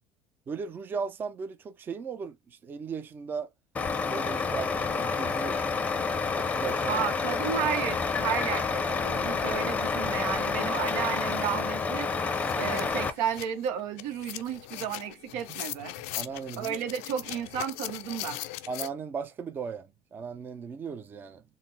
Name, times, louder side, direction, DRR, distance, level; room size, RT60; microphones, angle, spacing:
voice 1, 0.5-3.5 4.1-5.6 6.3-7.1 7.6-7.7 16.1-16.8 18.7-21.4, right 5 dB, 25° right, 0.5 m, -37 dB
Truck, 3.7-13.1, left 4 dB, 20° left, 0.6 m, -29 dB
voice 2, 6.9-12.1 12.6-15.9 16.6-18.4, right 8 dB, 80° right, 0.9 m, -32 dB
sound 1, 11.6-11.7 12.0-18.9, left 15 dB, 85° left, 0.4 m, -40 dB
4.1 x 2.0 x 3.9 m
cardioid pair, 135°, 8 cm